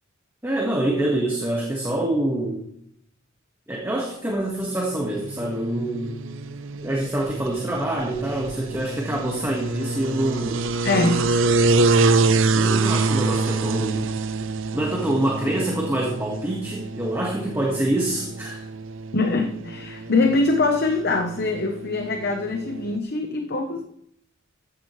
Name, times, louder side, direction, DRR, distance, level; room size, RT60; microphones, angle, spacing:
voice 1, 0.4-2.6 3.7-6.3 6.8-10.6 12.5-14.1 14.7-18.6, right 1 dB, 10° right, -2 dB, 1.7 m, -26 dB
sound 1, 4.9-23.0, right 3 dB, 65° right, 0.7 m, -26 dB
voice 2, 10.8-11.3 19.1-23.8, left 3 dB, 50° left, 5 dB, 0.9 m, -23 dB
15.0 x 11.0 x 3.3 m, 0.72 s
head